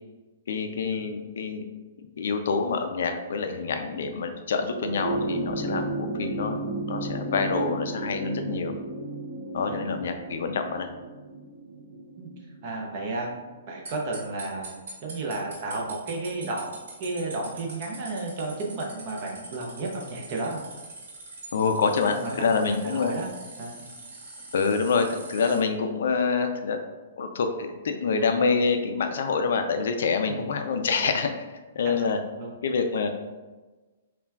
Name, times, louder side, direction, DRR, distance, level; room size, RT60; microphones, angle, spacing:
voice 1, 0.5-1.7 2.2-8.7 9.5-10.9 21.5-23.1 24.5-26.8 27.2-31.5 31.7-32.2 32.6-33.1, left 5 dB, 55° left, 6 dB, 0.3 m, -26 dB
sound 1, 4.7-13.3 14.6-14.7, right 2 dB, 80° right, 1.0 m, -33 dB
voice 2, 9.7-10.1 12.2-12.3 12.6-13.3 13.7-14.8 15.0-16.7 17.0-20.7 22.1-22.5 22.8-23.3 23.6-23.8 30.3-30.4 31.0-31.1 31.8-31.9 32.4-32.5, right 2 dB, 30° right, 0 dB, 0.5 m, -33 dB
sound 2, 13.8-25.6, right 3 dB, 55° right, 0.8 m, -44 dB
5.7 x 2.2 x 2.3 m, 1.2 s
hypercardioid pair, 180°, 0 cm